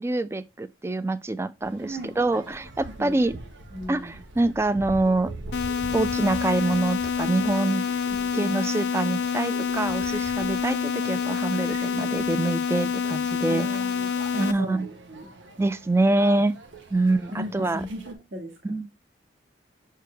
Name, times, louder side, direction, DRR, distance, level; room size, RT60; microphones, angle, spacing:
voice 1, 0.0-3.4 3.9-5.3 5.9-7.8 8.3-13.7 14.4-14.9 15.6-16.6 16.9-17.8 18.6-19.0, right 2 dB, 15° right, 0.3 m, -25 dB
sound 1, 1.6-18.1, right 3 dB, 90° right, 1.1 m, -43 dB
voice 2, 1.8-2.1 3.0-3.4 3.7-4.2 8.1-8.6 13.5-15.3 17.0-19.0, equal, 70° right, 1.8 m, -37 dB
sound 2, 5.5-14.5, left 6 dB, 70° left, 0.4 m, -27 dB
6.8 x 4.6 x 3.4 m
head